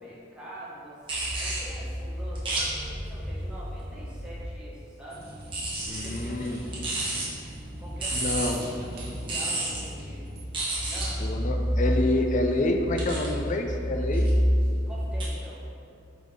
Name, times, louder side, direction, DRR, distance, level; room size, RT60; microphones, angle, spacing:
voice 1, 0.0-1.1 1.4-5.3 5.9-6.9 7.8-8.7 9.0-10.3 10.8-11.2 14.9-15.6, right 1 dB, 5° right, -9 dB, 1.4 m, -45 dB
sound 1, 1.0-4.6 5.4-15.2, equal, 25° right, 1.3 m, -30 dB
sound 2, 5.1-10.5, right 1 dB, 55° right, 1.0 m, -44 dB
voice 2, 5.9-6.6 8.1-8.7 11.2-14.3, left 2 dB, 40° left, 3 dB, 0.4 m, -28 dB
5.1 x 4.0 x 4.8 m, 2.5 s
head